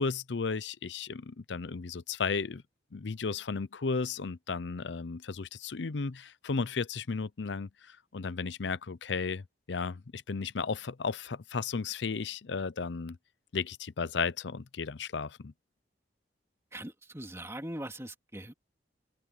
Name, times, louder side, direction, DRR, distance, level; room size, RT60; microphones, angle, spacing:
voice 1, 0.0-2.6 2.9-13.2 13.5-15.5, left 4 dB, 80° left, 0.6 m, -34 dB
voice 2, 16.7-18.5, right 1 dB, 15° right, 2.8 m, -41 dB
open air
head